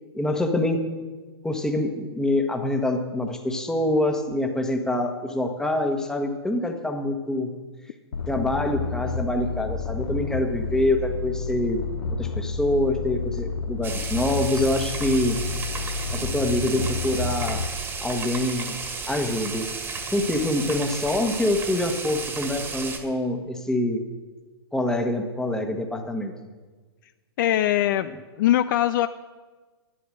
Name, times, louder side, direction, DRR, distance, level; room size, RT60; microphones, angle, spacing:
voice 1, 0.1-0.9 1.4-7.5 8.3-11.8 12.2-15.4 16.1-17.6 18.0-18.7 19.1-19.7 20.1-24.0 24.7-26.3, left 1 dB, 5° left, 4 dB, 1.3 m, -25 dB
sound 1, 8.1-17.7, left 5 dB, 75° left, 0.9 m, -30 dB
sound 2, 13.8-23.0, right 4 dB, 15° right, 1.7 m, -33 dB
voice 2, 27.4-29.1, left 13 dB, 50° left, 12 dB, 0.4 m, -22 dB
11.5 x 9.4 x 6.5 m, 1.3 s
hypercardioid pair, 125°, 14 cm